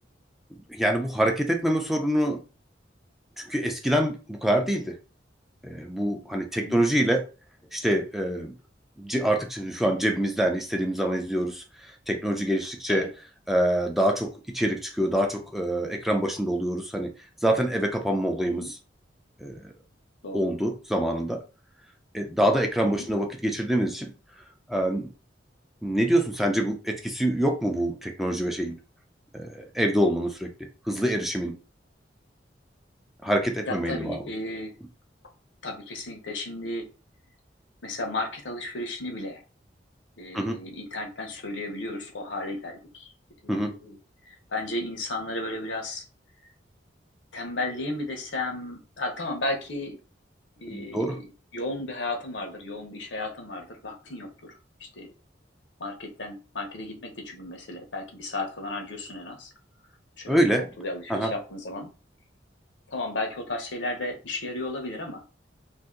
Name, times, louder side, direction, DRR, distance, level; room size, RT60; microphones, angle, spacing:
voice 1, 0.7-2.4 3.4-4.9 5.6-7.2 7.7-8.5 9.0-11.6 12.1-13.1 13.5-17.1 17.4-18.6 19.4-19.6 20.3-21.4 22.1-24.1 24.7-25.1 25.8-28.8 29.3-30.5 30.9-31.6 33.2-34.2 40.3-40.6 43.5-43.7 50.7-51.2 60.3-60.6 61.1-61.3, right 1 dB, ahead, 2 dB, 0.5 m, -25 dB
voice 2, 33.7-34.8 35.6-36.9 37.8-39.4 40.2-43.1 43.4-44.0 44.3-46.0 47.3-50.0 50.6-51.3 51.5-55.1 55.8-59.5 60.2-60.4 60.8-61.9 62.9-65.2, left 2 dB, 85° left, 4 dB, 0.9 m, -34 dB
2.7 x 2.6 x 3.7 m, 0.33 s
head